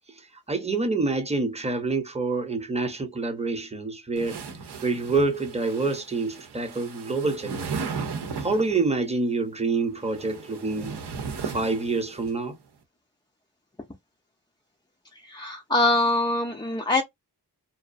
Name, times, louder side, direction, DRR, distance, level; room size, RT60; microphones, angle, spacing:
voice 1, 0.1-4.4 4.8-7.8 8.4-11.0 11.4-12.6, right 3 dB, 15° right, 0.8 m, -27 dB
sound 1, 4.2-8.8 9.8-12.3, right 5 dB, 70° right, 0.8 m, -36 dB
voice 2, 15.2-17.0, left 2 dB, 10° left, 0.5 m, -23 dB
2.5 x 2.0 x 2.5 m
cardioid pair, 60°, 41 cm